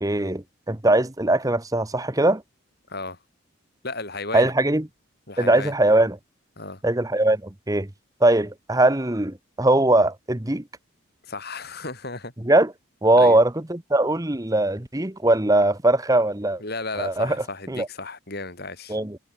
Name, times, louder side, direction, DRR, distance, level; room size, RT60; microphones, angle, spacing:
voice 1, 0.0-2.4 4.3-4.9 5.4-6.2 6.8-7.9 8.2-10.6 12.4-12.7 13.0-16.6 17.0-17.4 17.7-17.9 18.9-19.2, right 1 dB, 15° right, 1.0 m, -20 dB
voice 2, 3.8-4.5 5.3-5.7 6.6-6.8 11.3-12.3 13.2-13.4 16.6-19.0, left 3 dB, 45° left, 5.3 m, -34 dB
head